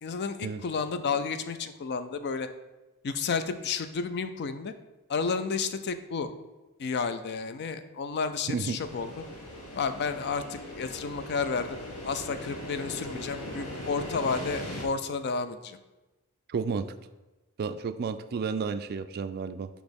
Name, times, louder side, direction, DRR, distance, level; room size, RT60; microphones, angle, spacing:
voice 1, 0.0-2.5 3.0-4.7 5.1-6.3 6.8-9.2 9.7-15.8, left 5 dB, 50° left, 10 dB, 0.4 m, -31 dB
voice 2, 8.5-8.8 16.5-16.9 17.6-19.7, right 5 dB, 45° right, 10 dB, 0.3 m, -31 dB
sound 1, 8.8-14.8, equal, 85° left, 1.2 m, -39 dB
6.2 x 3.0 x 5.2 m, 1.1 s
head